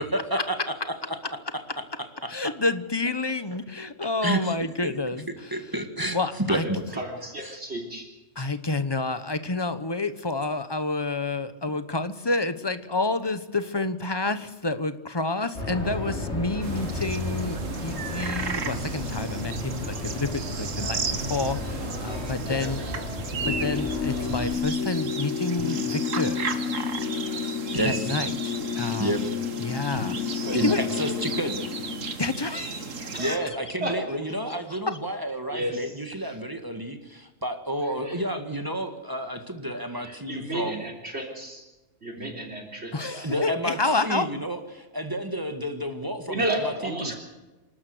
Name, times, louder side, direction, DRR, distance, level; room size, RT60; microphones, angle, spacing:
voice 1, 0.1-0.6 1.1-1.2 4.2-4.5 4.8-4.9 5.5-6.8 7.4-7.6 8.4-8.5 27.7-28.2 29.0-29.2 30.5-30.7 31.0-31.6 33.2-40.8 42.2-42.3 43.2-47.1, right 1 dB, 15° right, 6 dB, 1.8 m, -30 dB
voice 2, 2.3-5.6 6.1-6.6 8.4-22.8 23.4-26.4 27.8-30.2 30.5-30.8 32.2-33.1 34.5-34.6 34.9-35.0 42.9-44.3, left 3 dB, 20° left, 12 dB, 1.0 m, -29 dB
voice 3, 6.6-8.1 22.0-22.9 28.1-28.4 30.4-30.8 33.1-33.5 33.8-34.0 35.5-36.0 37.8-38.2 39.9-41.6 42.0-43.3 46.3-47.1, right 1 dB, 55° right, 1 dB, 3.8 m, -33 dB
sound 1, 15.5-24.5, left 1 dB, 60° left, 6.1 m, -33 dB
sound 2, 16.6-33.4, right 5 dB, 85° right, 1.8 m, -35 dB
sound 3, 23.4-32.1, left 8 dB, 85° left, 1.2 m, -31 dB
27.5 x 12.5 x 7.9 m, 1.1 s
omnidirectional pair, 1.3 m